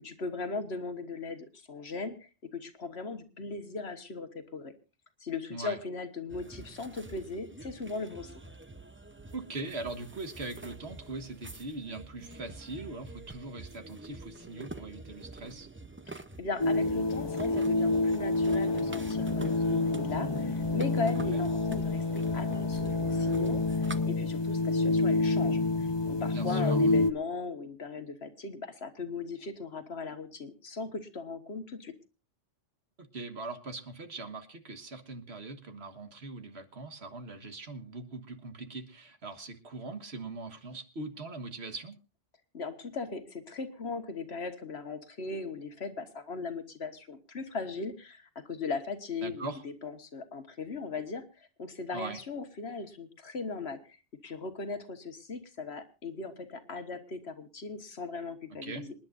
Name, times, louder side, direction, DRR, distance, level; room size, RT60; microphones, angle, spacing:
voice 1, 0.0-4.7 5.2-8.4 16.1-31.9 42.5-54.0 54.2-58.9, left 4 dB, 60° left, 9 dB, 1.7 m, -38 dB
sound 1, 6.3-24.0, right 2 dB, 15° right, 0.5 m, -46 dB
voice 2, 9.3-15.7 21.3-21.4 26.3-27.0 33.0-42.0 49.2-49.6 51.9-52.2 58.5-58.9, right 3 dB, 60° right, 8 dB, 1.7 m, -41 dB
sound 2, 16.6-27.1, left 2 dB, 25° left, 0.6 m, -28 dB
27.0 x 10.5 x 2.5 m, 0.31 s
omnidirectional pair, 1.2 m